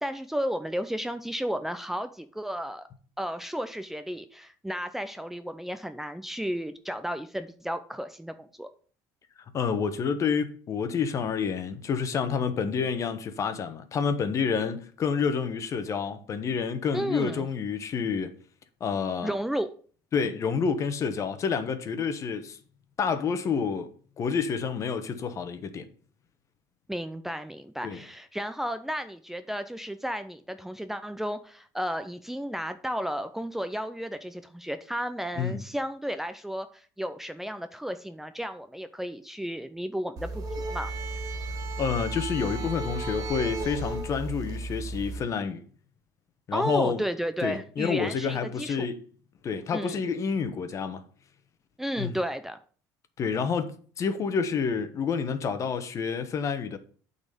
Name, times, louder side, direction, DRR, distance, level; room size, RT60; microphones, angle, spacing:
voice 1, 0.0-2.9 3.2-8.7 16.9-17.5 19.2-19.7 26.9-40.9 46.5-48.9 49.7-50.0 51.8-52.6, equal, 5° right, 0.6 m, -33 dB
voice 2, 9.5-18.3 18.8-19.3 20.1-22.6 23.0-25.9 27.8-28.0 35.4-35.6 41.8-45.6 46.5-47.0 47.4-49.0 49.4-51.0 52.0-52.1 53.2-56.8, left 6 dB, 40° left, 1.2 m, -29 dB
sound 1, 40.2-45.2, right 2 dB, 50° right, 2.2 m, -34 dB
8.6 x 4.2 x 6.8 m
supercardioid pair, 105°, 8 cm